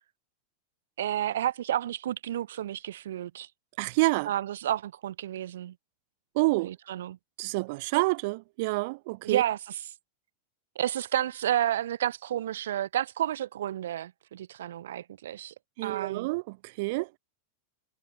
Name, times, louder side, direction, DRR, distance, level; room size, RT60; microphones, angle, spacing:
voice 1, 1.0-3.5 4.3-5.7 6.6-7.2 9.2-9.8 10.8-15.5 15.8-16.3, right 11 dB, 80° right, 2.2 m, -31 dB
voice 2, 3.8-4.3 6.3-6.7 7.4-9.4 15.8-17.2, right 24 dB, 60° right, 2.2 m, -28 dB
hypercardioid pair, 125°, 0 cm